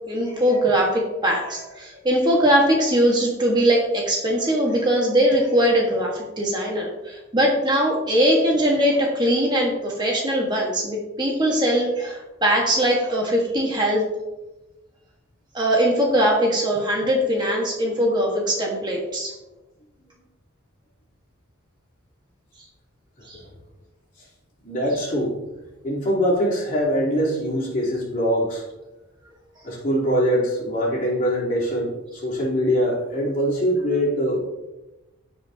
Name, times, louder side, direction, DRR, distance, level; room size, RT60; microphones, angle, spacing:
voice 1, 0.1-14.0 15.5-19.3 23.3-23.4, equal, 20° right, -2 dB, 1.3 m, -21 dB
voice 2, 24.6-25.4 25.8-28.6 29.6-34.4, equal, 40° left, -6 dB, 3.3 m, -23 dB
15.5 x 5.2 x 2.7 m, 1.0 s
head